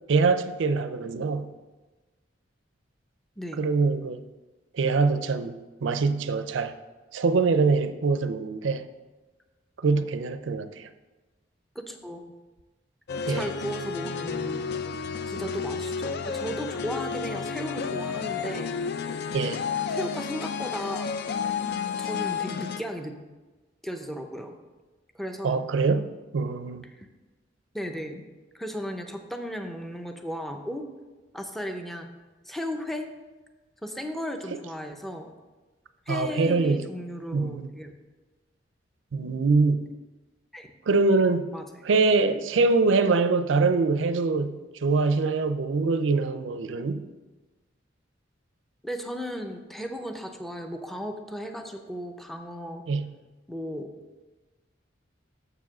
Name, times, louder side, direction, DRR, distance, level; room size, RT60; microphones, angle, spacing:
voice 1, 0.1-1.5 3.6-4.2 4.7-6.7 7.1-8.9 9.8-10.9 13.3-13.5 19.3-19.6 25.4-26.9 36.1-36.8 37.3-37.7 39.1-39.9 40.9-41.5 41.8-47.0 52.9-53.1, right 4 dB, 85° right, 0.5 m, -24 dB
voice 2, 3.4-3.7 11.7-12.2 13.3-14.7 15.3-18.7 19.9-21.2 22.0-23.2 23.8-24.5 25.1-25.6 26.8-27.1 27.7-28.2 28.5-30.9 31.3-32.1 32.5-33.1 33.8-35.3 36.1-37.9 40.5-40.7 41.5-41.7 48.8-52.8 53.5-53.9, equal, ahead, 0.6 m, -35 dB
sound 1, 13.1-22.8, left 6 dB, 60° left, 0.4 m, -31 dB
6.9 x 4.8 x 6.0 m
head